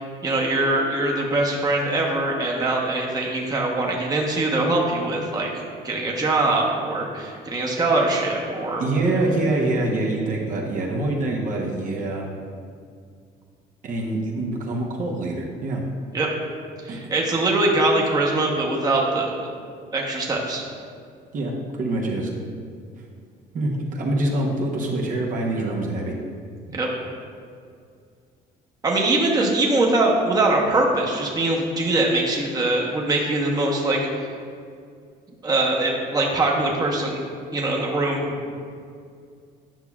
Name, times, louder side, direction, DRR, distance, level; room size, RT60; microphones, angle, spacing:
voice 1, 0.2-5.5 5.8-8.8 16.1-16.3 16.8-19.3 19.9-20.6 26.7-26.9 28.8-34.2 35.4-37.2 37.5-38.2, right 2 dB, 25° right, -2 dB, 1.0 m, -22 dB
voice 2, 8.8-12.3 13.8-15.8 16.9-17.0 21.3-22.3 23.5-26.1, right 2 dB, 50° right, -1 dB, 0.9 m, -25 dB
9.0 x 5.6 x 2.4 m, 2.2 s
cardioid pair, 110°, 17 cm